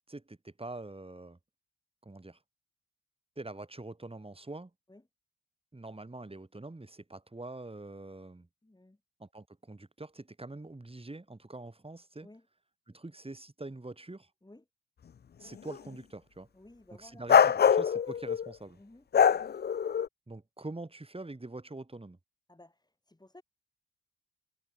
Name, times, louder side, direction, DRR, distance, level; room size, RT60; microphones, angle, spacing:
voice 1, 0.1-1.4 2.0-2.4 3.4-4.7 5.7-8.5 9.2-12.3 12.9-14.3 15.4-16.5 17.0-18.8 20.3-22.2, right 2 dB, 15° right, 5.3 m, -44 dB
voice 2, 8.6-9.0 12.2-12.5 14.4-14.6 16.5-17.5 18.8-19.1 22.5-23.4, left 1 dB, 10° left, 4.2 m, -56 dB
sound 1, 15.7-15.8 17.3-18.5 19.1-20.1, left 7 dB, 30° left, 0.5 m, -23 dB
cardioid pair, 70°, 35 cm